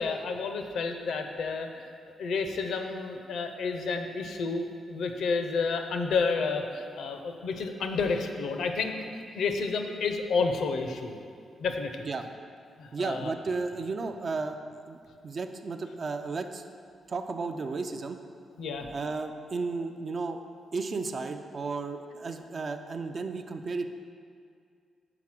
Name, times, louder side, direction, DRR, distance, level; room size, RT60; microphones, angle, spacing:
voice 1, 0.0-9.1 9.3-11.1 11.6-12.1 12.8-13.3 18.6-18.9, left 4 dB, 70° left, 5 dB, 0.6 m, -30 dB
voice 2, 12.9-14.6 14.9-15.0 15.2-16.6 17.1-18.2 18.9-20.4 20.7-23.9, right 4 dB, 35° right, 7 dB, 0.4 m, -33 dB
5.9 x 4.8 x 5.9 m, 2.2 s
wide cardioid pair, 150°, 0 cm